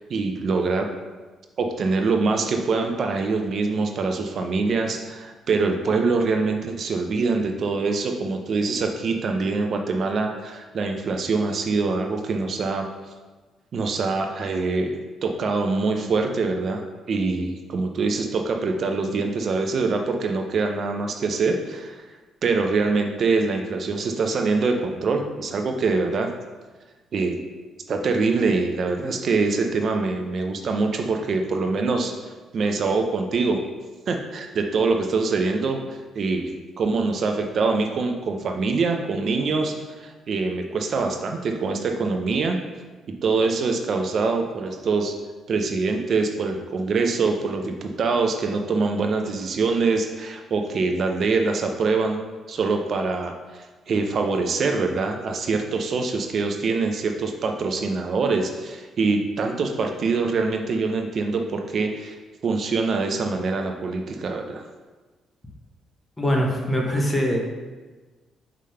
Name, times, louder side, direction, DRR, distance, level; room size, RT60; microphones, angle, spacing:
voice 1, 0.1-0.9 1.6-12.9 13.7-22.0 22.4-26.3 27.1-27.4 27.9-33.6 34.1-42.6 43.2-45.1 45.5-52.2 52.5-62.2 62.4-64.6, right 4 dB, 55° right, 4 dB, 0.6 m, -24 dB
voice 2, 66.2-67.4, equal, 20° left, 0 dB, 1.2 m, -22 dB
4.9 x 3.7 x 5.6 m, 1.3 s
cardioid pair, 90°, 0 cm